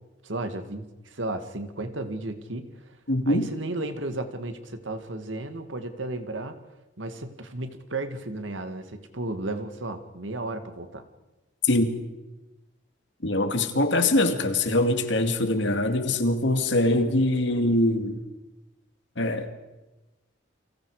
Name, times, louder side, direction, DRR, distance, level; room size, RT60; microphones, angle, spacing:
voice 1, 0.2-2.9 3.3-6.6 7.0-11.1, right 2 dB, 75° right, 8 dB, 2.2 m, -34 dB
voice 2, 3.1-3.5 11.7-11.9 13.2-18.2 19.2-19.5, left 1 dB, 70° left, 7 dB, 2.5 m, -23 dB
30.0 x 25.0 x 5.0 m, 1.1 s
head